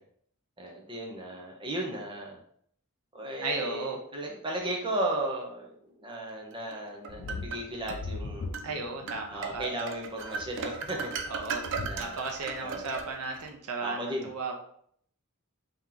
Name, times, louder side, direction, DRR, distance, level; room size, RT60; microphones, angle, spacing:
voice 1, 0.6-2.4 3.1-8.5 9.3-11.1 11.9-12.2 12.6-12.9 13.8-14.3, right 1 dB, 20° right, 0 dB, 0.7 m, -35 dB
voice 2, 3.4-4.0 8.6-9.7 11.3-11.6 12.0-14.5, right 3 dB, 90° right, 2 dB, 0.7 m, -35 dB
sound 1, 6.7-8.0 8.5-8.7 9.1-13.5, right 5 dB, 60° right, 0.5 m, -37 dB
sound 2, 7.1-9.6 10.3-10.6 11.0-11.1 11.7-12.0, left 3 dB, 70° left, 0.4 m, -39 dB
3.5 x 2.9 x 3.7 m, 0.65 s
head